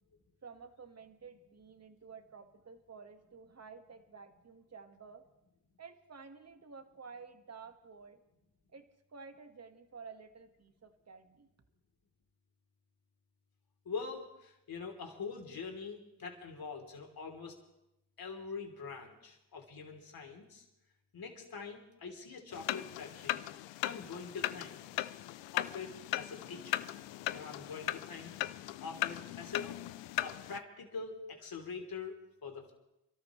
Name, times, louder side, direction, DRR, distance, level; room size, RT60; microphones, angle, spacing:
voice 1, 0.4-5.2 5.8-8.2 8.7-11.5, right 5 dB, 35° right, 7 dB, 1.7 m, -52 dB
voice 2, 13.9-17.6 18.2-20.6 21.1-23.5 23.8-25.0 25.5-26.9 27.3-29.7 30.2-32.7, left 5 dB, 55° left, 2 dB, 3.5 m, -44 dB
sound 1, 22.5-30.6, left 15 dB, 85° left, 0.6 m, -38 dB
28.0 x 13.0 x 3.2 m, 0.86 s
supercardioid pair, 60°, 42 cm